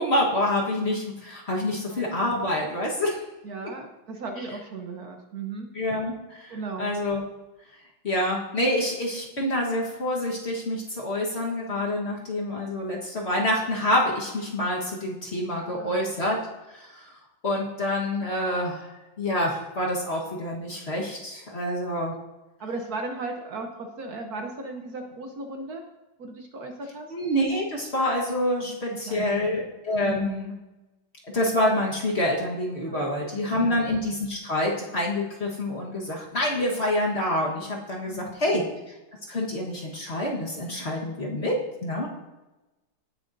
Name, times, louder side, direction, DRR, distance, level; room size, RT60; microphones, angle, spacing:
voice 1, 0.0-3.2 5.7-7.2 8.0-16.4 16.7-17.0 17.4-18.9 19.2-22.1 27.1-30.5 31.3-38.6 39.3-41.5 41.8-42.1, left 1 dB, 35° left, -2 dB, 1.5 m, -27 dB
voice 2, 3.4-5.7 6.5-6.9 15.6-16.0 22.6-25.8 26.2-27.1 28.6-29.6 30.0-30.4 32.9-33.1 33.6-33.8 38.1-38.7, right 3 dB, 60° right, 3 dB, 1.3 m, -36 dB
17.5 x 6.9 x 2.6 m, 1.0 s
omnidirectional pair, 2.1 m